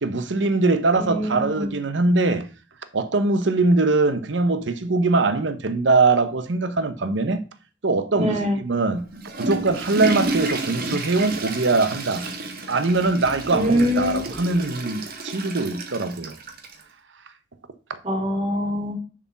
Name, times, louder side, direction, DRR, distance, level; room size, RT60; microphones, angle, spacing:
voice 1, 0.0-2.5 2.9-7.4 7.8-9.1 9.4-12.2 12.7-16.4, right 3 dB, 70° right, 0.9 m, -22 dB
voice 2, 1.0-1.8 8.1-8.6 13.5-14.2 18.0-18.9, equal, 30° right, 3.1 m, -24 dB
Water / Toilet flush, 9.0-16.8, right 2 dB, 50° right, 1.7 m, -31 dB
7.0 x 4.9 x 7.1 m
head